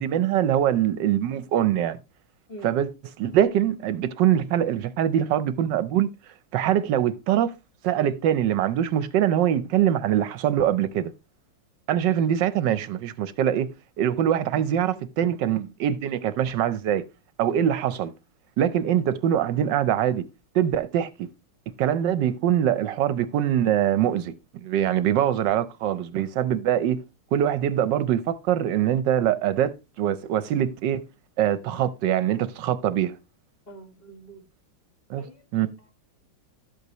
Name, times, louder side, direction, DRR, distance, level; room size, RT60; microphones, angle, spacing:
voice 1, 0.0-2.0 2.6-2.9 3.2-6.1 6.5-7.5 7.8-11.1 11.9-13.7 14.0-17.0 17.4-18.1 18.6-20.2 20.5-21.3 21.8-27.0 27.3-31.0 31.4-33.2 35.1-35.2 35.5-35.7, right 10 dB, 75° right, 1.2 m, -23 dB
voice 2, 33.7-34.4 35.2-35.4, right 1 dB, 30° left, 1.9 m, -43 dB
12.0 x 8.2 x 2.9 m
omnidirectional pair, 2.1 m